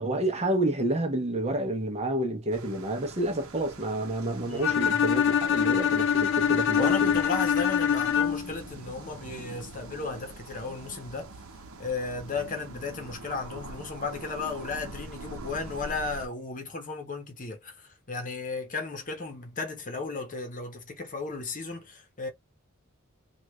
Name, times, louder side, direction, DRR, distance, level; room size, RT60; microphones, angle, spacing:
voice 1, 0.0-7.2, right 1 dB, 30° right, 0.9 m, -29 dB
sound 1, 2.5-16.3, right 2 dB, 70° right, 0.8 m, -44 dB
voice 2, 4.4-5.1 6.8-11.3 11.8-22.3, left 4 dB, 40° left, 1.0 m, -35 dB
Bowed string instrument, 4.6-8.6, left 8 dB, 60° left, 0.4 m, -24 dB
3.4 x 2.5 x 3.1 m
head